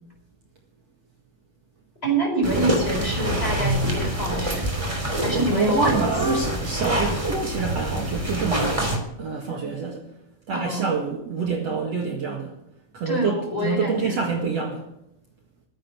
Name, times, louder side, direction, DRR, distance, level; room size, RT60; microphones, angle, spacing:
voice 1, 2.0-4.7 5.2-6.2 10.5-10.9 13.1-14.2, right 1 dB, 15° left, 0 dB, 4.6 m, -26 dB
sound 1, 2.4-9.0, right 1 dB, 10° right, 2.4 m, -26 dB
voice 2, 5.3-10.1 10.5-12.5 12.9-13.4 13.6-14.9, right 5 dB, 55° right, 0 dB, 2.7 m, -27 dB
15.5 x 11.0 x 5.9 m, 0.79 s
omnidirectional pair, 3.9 m